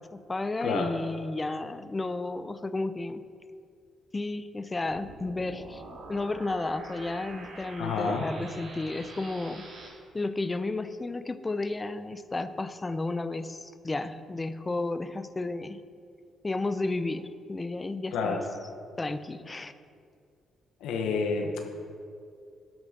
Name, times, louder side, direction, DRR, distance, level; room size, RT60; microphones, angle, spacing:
voice 1, 0.1-3.2 4.1-5.8 6.1-9.6 10.1-15.8 16.4-18.4 19.0-19.7, left 2 dB, 20° left, 12 dB, 0.6 m, -32 dB
sound 1, 4.9-9.9, right 2 dB, 80° right, 3.1 m, -45 dB
voice 2, 7.8-8.3 18.1-18.4 20.8-21.6, left 4 dB, 90° left, 3 dB, 1.1 m, -29 dB
12.5 x 6.1 x 6.5 m, 2.3 s
cardioid pair, 90°, 0 cm